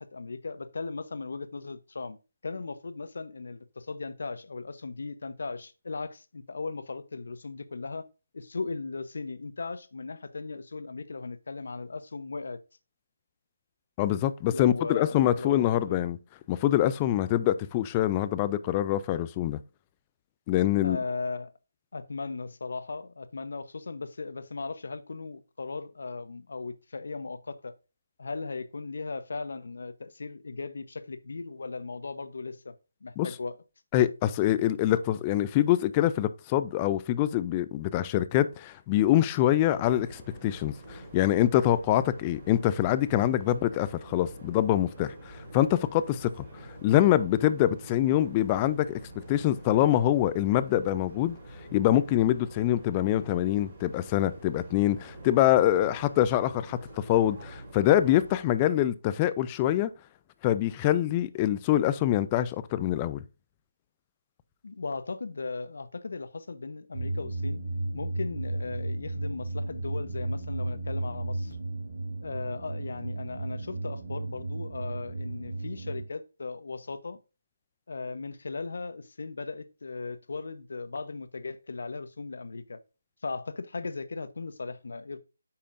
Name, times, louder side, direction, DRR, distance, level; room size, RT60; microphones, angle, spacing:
voice 1, 0.0-2.2 2.4-8.0 8.3-12.6 14.5-16.0 20.8-21.5 21.9-27.7 28.2-32.7 33.0-33.6 64.6-67.6 67.9-71.6 72.2-77.2 77.9-82.8 83.2-85.2, left 4 dB, 65° left, 0.8 m, -37 dB
voice 2, 14.0-16.2 16.5-19.6 20.5-21.0 33.2-33.3 33.9-46.4 46.8-49.0 49.3-51.4 51.7-59.9 60.4-63.2, left 13 dB, 15° left, 0.3 m, -25 dB
sound 1, 39.5-58.4, right 1 dB, 25° right, 3.1 m, -46 dB
sound 2, 66.9-76.0, right 2 dB, 70° right, 2.8 m, -34 dB
8.5 x 5.6 x 2.5 m
hypercardioid pair, 170°, 0 cm